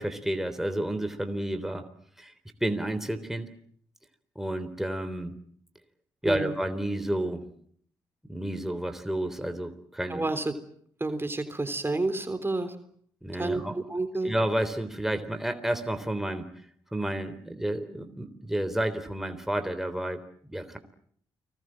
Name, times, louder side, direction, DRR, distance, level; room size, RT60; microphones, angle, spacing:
voice 1, 0.0-1.8 2.2-2.3 2.6-3.5 4.4-5.4 6.2-7.5 8.3-10.2 13.2-13.8 14.2-16.5 16.9-20.2 20.5-20.8, right 1 dB, 5° right, 8 dB, 3.6 m, -30 dB
voice 2, 6.2-6.5 10.1-10.5 11.0-12.7 13.3-14.3, right 2 dB, 25° right, 9 dB, 3.4 m, -30 dB
30.0 x 20.5 x 7.7 m, 0.64 s
supercardioid pair, 50°, 10 cm